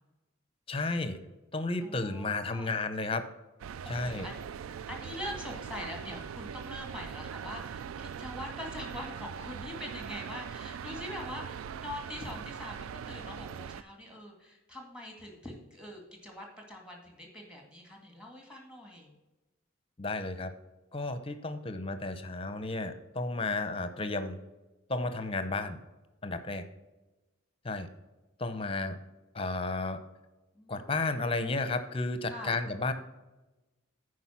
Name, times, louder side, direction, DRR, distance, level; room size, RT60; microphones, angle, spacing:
voice 1, 0.7-1.2 1.5-3.2 3.9-4.3 20.0-20.5 20.9-24.4 24.9-25.8 26.2-26.7 27.6-27.9 28.4-29.0 29.3-30.0 30.7-32.9, left 3 dB, 25° left, 10 dB, 0.7 m, -32 dB
voice 2, 1.8-2.7 3.8-19.1 30.5-30.9 32.2-32.6, left 1 dB, 5° right, 1 dB, 1.9 m, -43 dB
sound 1, 3.6-13.8, right 7 dB, 90° right, 0.3 m, -41 dB
10.0 x 4.9 x 5.8 m, 1.1 s
head